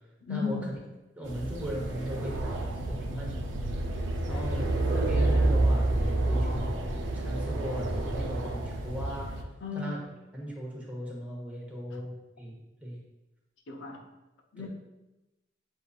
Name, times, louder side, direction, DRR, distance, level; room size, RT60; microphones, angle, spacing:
voice 1, 0.2-0.7 4.3-4.5 9.6-10.0 11.9-12.0 13.7-14.0 14.5-14.7, left 5 dB, 75° left, 2 dB, 0.6 m, -35 dB
voice 2, 1.2-9.4 9.7-10.0 10.3-13.0 14.6-14.7, equal, 10° right, -4 dB, 1.0 m, -38 dB
sound 1, 1.2-9.4, right 2 dB, 75° right, 0.6 m, -29 dB
7.5 x 2.6 x 2.4 m, 1.0 s
head